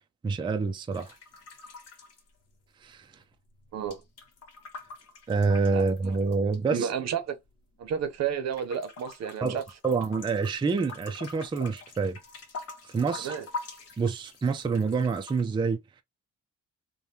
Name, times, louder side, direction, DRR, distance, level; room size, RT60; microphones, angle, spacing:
voice 1, 0.2-1.1 2.8-3.1 5.3-6.9 9.4-12.2 12.9-13.4 14.0-15.8, right 4 dB, 15° right, 0.4 m, -27 dB
sound 1, 0.9-3.0 3.2-6.6 7.2-8.2 8.5-15.4, left 3 dB, 55° left, 1.0 m, -45 dB
voice 2, 5.7-6.2 6.7-7.4 7.8-9.6 13.2-13.5, right 7 dB, 60° right, 0.7 m, -32 dB
3.3 x 2.2 x 2.7 m
cardioid pair, 90°, 30 cm